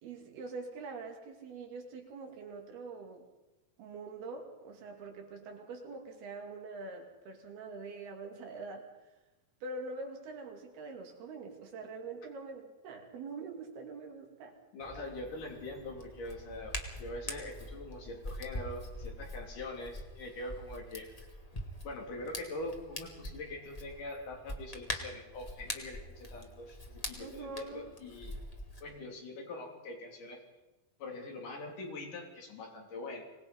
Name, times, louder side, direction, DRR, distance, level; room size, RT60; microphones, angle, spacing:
voice 1, 0.0-3.3 3.8-8.9 9.6-14.6 27.2-27.9, right 3 dB, 90° right, 2 dB, 4.6 m, -44 dB
voice 2, 14.7-21.1 21.8-28.3 28.8-30.4 31.0-33.2, left 2 dB, 60° left, 1 dB, 4.8 m, -43 dB
Hands, 14.8-28.8, left 1 dB, 80° left, 0.3 m, -44 dB
24.5 x 19.0 x 5.5 m, 1.0 s
omnidirectional pair, 4.3 m